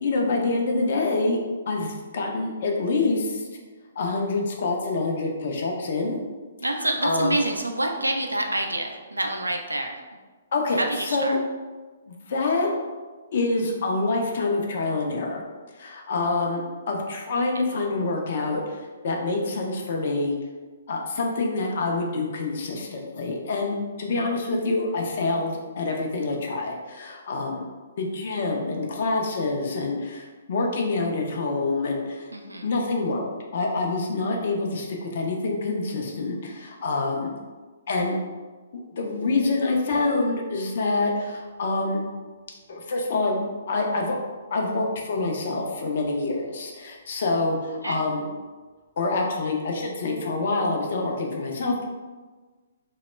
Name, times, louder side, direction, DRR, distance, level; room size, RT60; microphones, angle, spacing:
voice 1, 0.0-1.4 1.7-3.5 4.0-6.2 7.0-7.4 10.5-10.8 11.1-11.4 12.1-12.7 13.3-15.4 15.8-20.3 20.9-27.7 28.0-32.3 32.6-33.2 33.5-37.3 37.9-38.2 39.0-42.0 42.7-44.2 44.5-48.3 49.0-51.8, left 3 dB, 50° left, 0 dB, 0.4 m, -26 dB
voice 2, 6.6-10.0 10.7-11.4 17.3-17.7 32.3-32.7 47.8-48.0, right 1 dB, 85° right, 3 dB, 0.3 m, -27 dB
Piano, 39.9-49.5, left 2 dB, 15° right, 0.4 m, -43 dB
2.1 x 2.0 x 3.1 m, 1.3 s
figure-of-eight pair, 125°, 0 cm